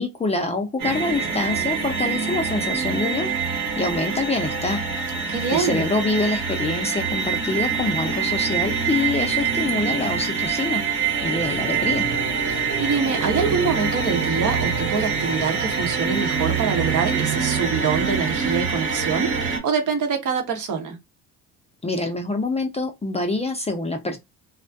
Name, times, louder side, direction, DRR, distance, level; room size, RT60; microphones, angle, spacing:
voice 1, 0.0-4.8 5.5-10.8 11.2-12.1 21.8-24.2, left 3 dB, 15° left, 0.5 m, -25 dB
sound 1, 0.8-19.6, right 6 dB, 70° right, 1.2 m, -25 dB
voice 2, 5.3-5.9 12.5-21.0, right 5 dB, 50° right, 0.9 m, -25 dB
2.4 x 2.2 x 2.5 m
supercardioid pair, 70°, 38 cm